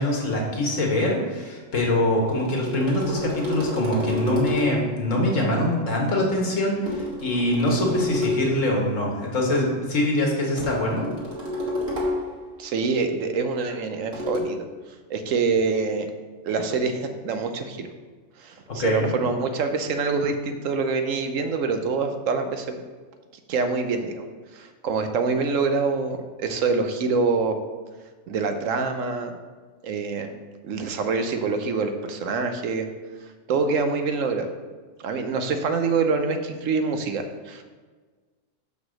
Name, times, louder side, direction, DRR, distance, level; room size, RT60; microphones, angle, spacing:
voice 1, 0.0-11.1 18.7-19.1, left 1 dB, 75° left, -1 dB, 1.9 m, -24 dB
sound 1, 2.1-4.9 6.9-8.6 10.6-12.4 14.1-14.4, left 1 dB, 50° right, 2.0 m, -29 dB
voice 2, 12.6-14.6 15.1-16.1 16.4-17.9 18.4-22.8 23.5-24.3 24.5-27.6 28.3-29.4 29.8-30.3 30.6-32.9 33.5-34.5 35.0-37.6, right 4 dB, 80° right, 7 dB, 1.2 m, -25 dB
6.0 x 5.4 x 6.3 m, 1.4 s
omnidirectional pair, 1.3 m